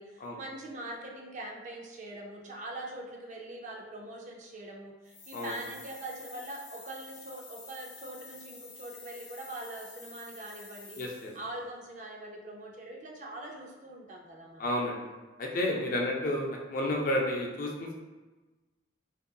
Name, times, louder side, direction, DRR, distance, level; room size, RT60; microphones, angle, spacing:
voice 1, 0.0-11.0 11.3-14.7 15.7-16.0, right 1 dB, 40° right, 0 dB, 0.4 m, -43 dB
sound 1, 5.0-11.5, left 3 dB, 85° left, 0.7 m, -50 dB
voice 2, 11.0-11.3 14.6-15.0 15.4-18.0, left 1 dB, 45° left, 0 dB, 0.4 m, -31 dB
2.7 x 2.4 x 2.2 m, 1.2 s
head